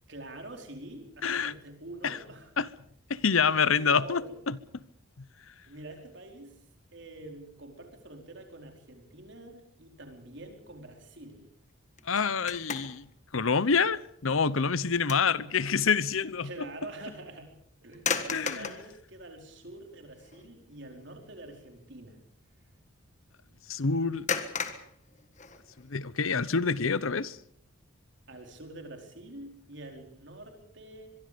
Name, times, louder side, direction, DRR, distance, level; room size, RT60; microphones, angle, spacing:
voice 1, 0.1-2.5 3.4-4.4 5.7-6.5 6.9-11.5 15.3-15.5 16.4-17.5 17.8-22.2 28.3-31.1, right 1 dB, 60° right, 4.6 m, -46 dB
voice 2, 1.2-1.5 2.0-2.2 2.6-2.7 3.1-4.6 12.1-13.1 13.3-16.7 18.3-18.6 23.7-24.3 25.8-27.4, left 5 dB, 75° left, 0.9 m, -27 dB
sound 1, 12.0-13.1 13.6-13.8 14.3-15.4 15.7-15.9 17.9-18.9 19.7-19.8 20.2-20.5 20.8-21.0 24.3-25.9, left 6 dB, 35° left, 1.6 m, -35 dB
24.5 x 22.5 x 5.2 m
head